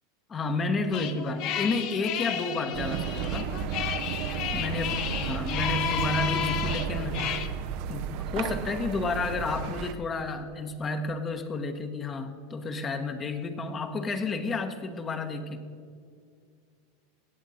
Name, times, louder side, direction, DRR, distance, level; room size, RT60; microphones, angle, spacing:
voice 1, 0.3-3.6 4.5-7.4 7.9-8.1 8.3-15.6, left 3 dB, 25° left, 7 dB, 1.0 m, -31 dB
sound 1, 0.9-7.5, left 10 dB, 50° left, 0.8 m, -32 dB
sound 2, 2.7-9.9, right 8 dB, 60° right, 0.6 m, -33 dB
17.5 x 7.5 x 4.2 m, 2.2 s
hypercardioid pair, 105°, 0 cm